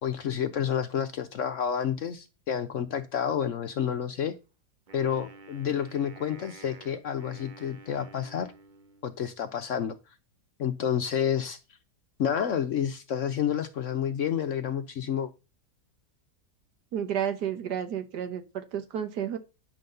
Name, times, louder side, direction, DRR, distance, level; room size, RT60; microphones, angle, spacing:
voice 1, 0.0-4.3 4.9-8.5 9.0-10.0 10.6-11.6 12.2-15.3, left 8 dB, 60° left, 0.9 m, -29 dB
Wind instrument woodwind instrument, 4.9-9.3, right 3 dB, 45° right, 0.6 m, -50 dB
voice 2, 16.9-19.4, right 9 dB, 75° right, 1.6 m, -31 dB
9.9 x 4.0 x 6.6 m
omnidirectional pair, 1.8 m